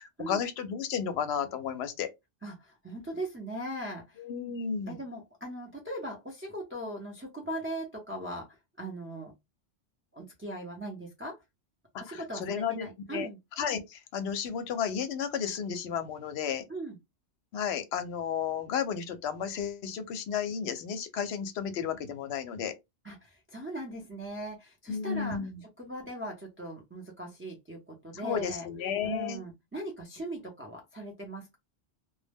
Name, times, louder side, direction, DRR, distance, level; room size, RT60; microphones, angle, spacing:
voice 1, 0.0-2.1 4.2-5.0 12.1-13.3 13.6-16.7 17.5-22.7 24.9-25.6 28.2-29.4, left 7 dB, 70° left, 0.8 m, -33 dB
voice 2, 2.4-4.2 4.9-9.3 10.1-11.4 12.0-13.4 16.7-17.0 23.0-25.4 25.8-28.7 29.0-31.6, right 1 dB, 15° right, 0.5 m, -39 dB
2.2 x 2.0 x 3.3 m
omnidirectional pair, 1.2 m